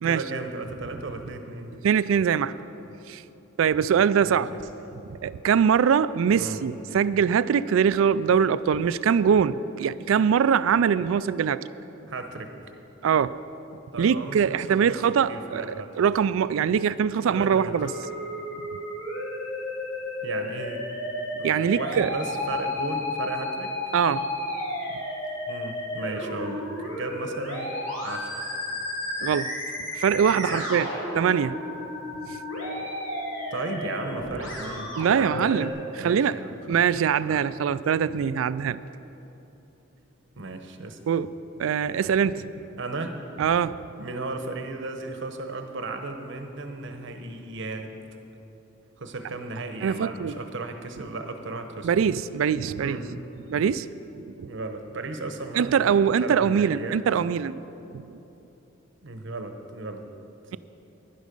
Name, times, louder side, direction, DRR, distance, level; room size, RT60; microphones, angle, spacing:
voice 1, 0.0-1.7 4.2-4.6 6.4-6.7 12.1-12.7 13.9-15.0 15.3-15.9 17.3-17.7 20.2-20.8 21.4-23.7 25.5-27.7 28.0-28.3 30.5-30.7 33.5-36.8 37.3-37.4 40.4-41.0 42.8-43.2 44.0-47.9 49.0-51.9 52.8-53.1 54.4-55.9 56.2-57.0 59.0-60.0, right 3 dB, 65° right, 6 dB, 1.0 m, -35 dB
voice 2, 1.8-2.5 3.1-3.2 3.6-4.5 5.1-11.6 13.0-13.4 14.0-17.9 21.4-22.1 23.9-24.3 29.2-29.5 30.0-30.9 31.1-31.6 35.0-35.7 36.0-36.4 36.7-38.8 41.1-41.3 41.6-42.6 43.4-43.8 49.8-50.4 51.8-53.2 53.5-53.9 54.4-54.5 55.5-57.6 57.9-58.0, right 7 dB, 90° right, 16 dB, 0.3 m, -23 dB
Musical instrument, 17.7-35.7, left 1 dB, 90° left, 2.8 m, -33 dB
11.5 x 11.0 x 5.3 m, 3.0 s
head